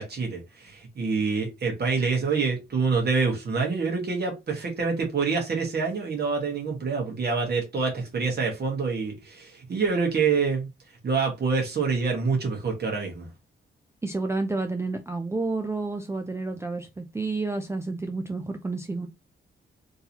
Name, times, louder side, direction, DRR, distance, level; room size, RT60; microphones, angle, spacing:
voice 1, 0.0-10.7 11.0-13.3, right 5 dB, 55° right, 1.3 m, -26 dB
voice 2, 14.0-19.1, right 3 dB, 15° right, 0.4 m, -30 dB
3.8 x 2.7 x 2.8 m
cardioid pair, 80°, 20 cm